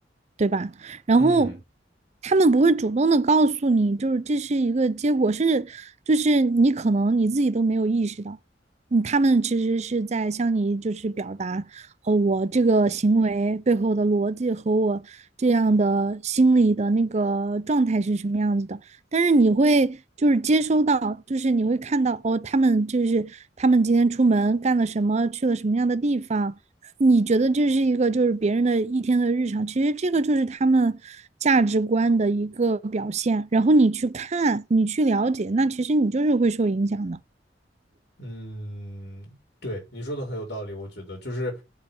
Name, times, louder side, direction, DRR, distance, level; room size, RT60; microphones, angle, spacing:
voice 1, 0.4-1.5 2.2-8.4 8.9-15.0 15.4-18.8 19.1-26.5 27.0-31.2 31.4-37.2, right 3 dB, 40° right, 0.5 m, -22 dB
voice 2, 1.2-1.5 38.2-39.4 39.6-41.6, equal, 60° left, 4.3 m, -34 dB
7.6 x 4.7 x 7.0 m
head